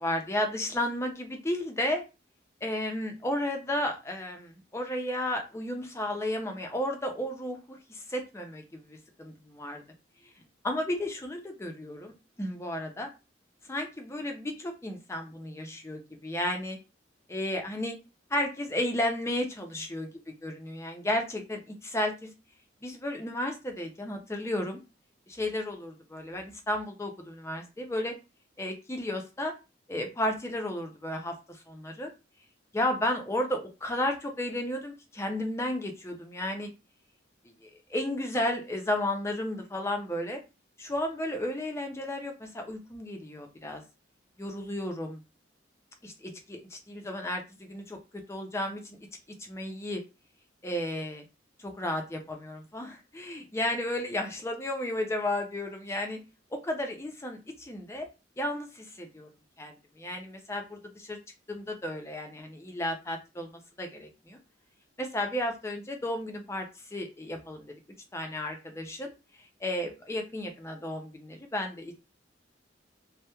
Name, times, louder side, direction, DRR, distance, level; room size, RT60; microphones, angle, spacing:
voice 1, 0.0-2.0 2.6-9.8 10.6-12.1 12.4-13.1 13.6-16.8 17.3-18.0 18.3-20.1 20.4-22.3 22.8-24.8 25.3-28.1 28.6-29.5 29.9-32.1 32.7-36.7 37.6-40.4 40.8-43.8 44.4-45.2 46.0-49.0 49.4-50.0 50.6-51.2 51.6-56.2 56.5-58.1 58.4-59.3 59.6-61.2 61.5-64.4 65.0-67.7 68.1-69.1 69.6-71.9, left 1 dB, 15° left, 4 dB, 0.4 m, -33 dB
2.8 x 2.0 x 2.2 m, 0.28 s
head